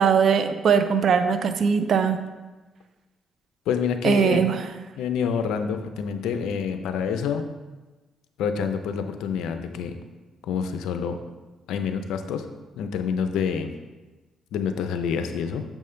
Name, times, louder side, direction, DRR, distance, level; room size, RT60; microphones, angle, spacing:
voice 1, 0.0-2.2 4.0-4.6, right 6 dB, 60° right, 9 dB, 0.5 m, -20 dB
voice 2, 3.7-4.4 5.0-7.5 8.4-10.0 10.4-11.2 11.7-12.4 12.8-13.7 14.5-15.6, left 7 dB, 85° left, 8 dB, 0.5 m, -27 dB
7.2 x 5.4 x 3.3 m, 1.2 s
cardioid pair, 90°, 0 cm